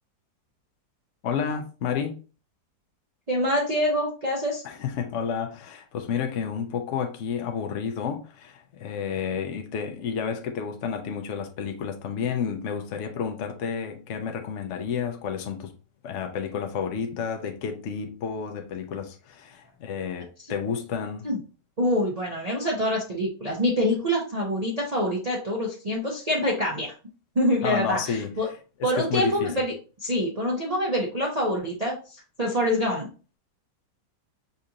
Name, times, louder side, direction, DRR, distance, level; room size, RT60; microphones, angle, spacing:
voice 1, 1.2-2.2 4.6-15.7 16.0-21.3 27.6-28.3 29.0-29.5, left 7 dB, 60° left, 0.8 m, -30 dB
voice 2, 3.3-4.6 21.2-21.4 21.8-26.9 27.3-28.5 28.8-29.7 30.0-33.1, equal, 45° right, 0.5 m, -25 dB
5.5 x 2.5 x 2.8 m
omnidirectional pair, 1.9 m